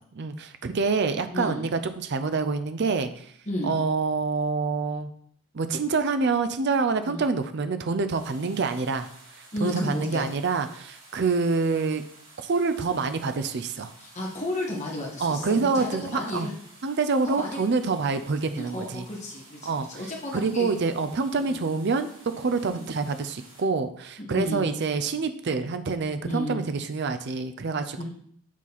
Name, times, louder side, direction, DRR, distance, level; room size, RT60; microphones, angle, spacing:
voice 1, 0.2-3.3 3.6-5.1 5.5-9.1 9.6-12.0 12.5-13.9 15.2-16.5 16.8-19.0 19.6-19.9 20.3-28.0, right 4 dB, 50° right, 9 dB, 0.5 m, -26 dB
voice 2, 1.3-1.6 3.4-3.7 7.0-7.2 9.5-10.3 14.0-16.5 17.2-17.6 18.6-20.7 21.4-21.6 22.6-22.9 24.2-24.7 26.3-26.6 28.0-28.1, left 1 dB, 30° left, -3 dB, 1.7 m, -33 dB
sound 1, 8.1-23.6, right 2 dB, 65° right, 2.9 m, -52 dB
7.3 x 4.0 x 4.2 m, 0.63 s
head